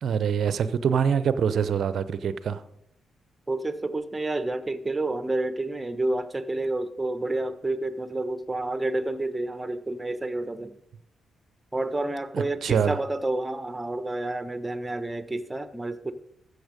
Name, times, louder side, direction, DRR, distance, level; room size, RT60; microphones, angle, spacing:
voice 1, 0.0-2.6 12.3-13.0, right 7 dB, 60° right, 14 dB, 0.7 m, -25 dB
voice 2, 3.5-10.7 11.7-16.1, right 2 dB, 20° right, 12 dB, 1.1 m, -29 dB
14.0 x 6.7 x 5.2 m, 0.81 s
hypercardioid pair, 40°, 0 cm